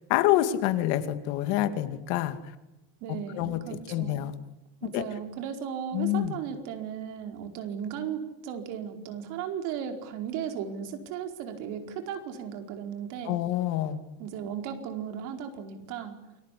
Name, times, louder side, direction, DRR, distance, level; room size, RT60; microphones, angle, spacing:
voice 1, 0.1-2.4 3.3-3.6 3.9-4.3 4.9-5.0 5.9-6.4 13.2-14.0, left 13 dB, 60° left, 9 dB, 2.6 m, -26 dB
voice 2, 3.0-4.2 4.8-13.4 14.2-16.2, right 8 dB, 55° right, 5 dB, 4.7 m, -36 dB
29.0 x 22.5 x 8.5 m, 0.99 s
cardioid pair, 175°, 35 cm